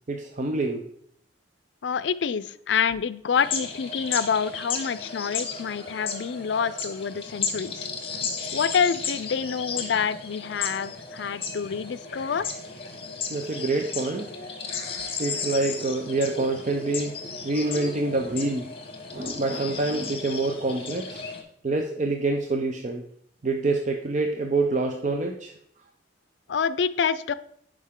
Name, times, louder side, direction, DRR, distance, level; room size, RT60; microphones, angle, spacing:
voice 1, 0.1-0.8 13.3-14.3 15.2-17.1 17.4-18.7 19.1-21.2 21.6-23.0 23.4-25.5, right 2 dB, 45° right, 3 dB, 0.6 m, -26 dB
voice 2, 1.8-7.9 8.5-12.5 26.5-27.3, left 6 dB, 75° left, 15 dB, 0.4 m, -27 dB
sound 1, 3.4-21.4, left 5 dB, 35° left, 1.3 m, -34 dB
11.0 x 4.9 x 3.7 m, 0.68 s
head